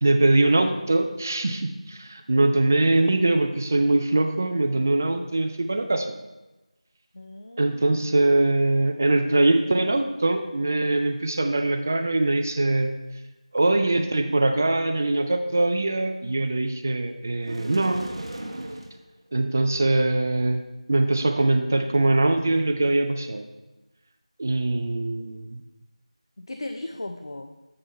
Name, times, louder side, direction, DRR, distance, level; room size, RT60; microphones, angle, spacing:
voice 1, 0.0-6.1 7.6-12.9 13.5-18.1 19.3-20.6 20.9-23.5 24.4-25.6, right 2 dB, 25° right, 7 dB, 0.4 m, -22 dB
voice 2, 7.1-8.2 26.4-27.6, left 2 dB, 45° left, 6 dB, 0.4 m, -37 dB
sound 1, 17.4-19.0, right 1 dB, 50° right, 1.0 m, -36 dB
7.7 x 5.4 x 4.3 m, 1.1 s
figure-of-eight pair, 170°, 4 cm